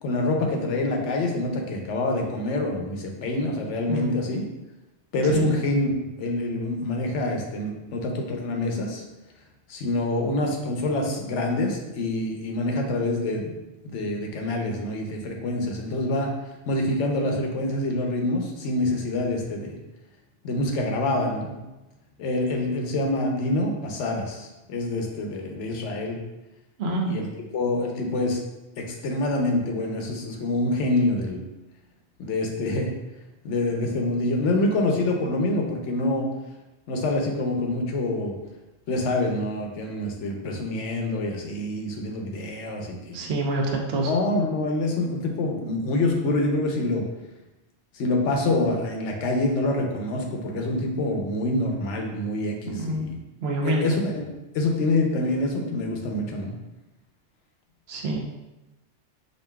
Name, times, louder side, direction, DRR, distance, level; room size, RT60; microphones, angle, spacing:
voice 1, 0.0-4.5 5.1-5.9 6.2-9.0 9.7-13.5 13.8-16.3 16.7-19.8 20.4-21.6 22.2-26.2 27.1-27.3 27.5-28.4 28.8-31.5 32.2-32.9 33.4-36.3 36.9-38.4 38.9-43.2 44.1-47.1 47.9-53.2 53.6-56.6, left 2 dB, 85° left, 2 dB, 1.0 m, -26 dB
voice 2, 26.8-27.1 43.1-44.1 52.7-53.1 53.4-53.9 57.9-58.2, right 1 dB, 65° right, 1 dB, 0.8 m, -26 dB
5.1 x 2.6 x 2.2 m, 1.0 s
omnidirectional pair, 1.2 m